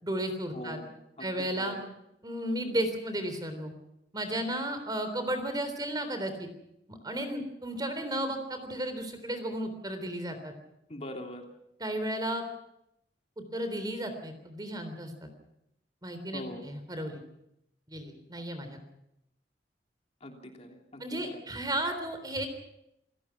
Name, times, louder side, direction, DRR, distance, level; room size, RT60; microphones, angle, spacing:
voice 1, 0.0-0.8 1.2-1.8 2.2-3.7 4.1-6.5 6.9-10.5 11.8-12.4 13.4-15.1 16.0-17.2 17.9-18.8 21.0-22.5, right 1 dB, 25° right, 8 dB, 3.6 m, -34 dB
voice 2, 0.5-1.9 10.9-11.4 16.3-16.7 20.2-21.4, left 1 dB, 40° left, 2 dB, 3.2 m, -42 dB
28.5 x 16.5 x 6.0 m, 0.80 s
head